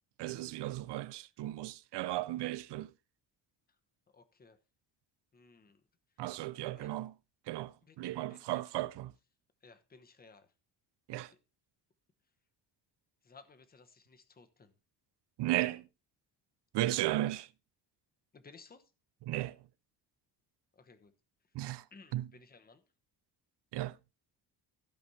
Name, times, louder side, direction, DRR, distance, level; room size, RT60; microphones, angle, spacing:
voice 1, 0.2-2.9 6.2-7.1 7.5-9.1 11.1-11.3 15.4-15.9 16.7-17.5 19.2-19.6 21.5-21.8 22.1-22.3 23.7-24.0, right 15 dB, 80° right, 0.7 m, -35 dB
voice 2, 4.1-4.6 5.3-5.8 6.7-7.0 7.8-8.0 8.3-8.6 9.6-10.5 11.3-11.4 13.2-14.7 18.3-18.8 20.7-21.1 21.9-22.8, left 4 dB, 20° left, 1.0 m, -58 dB
15.5 x 5.2 x 4.1 m
cardioid pair, 170°, 41 cm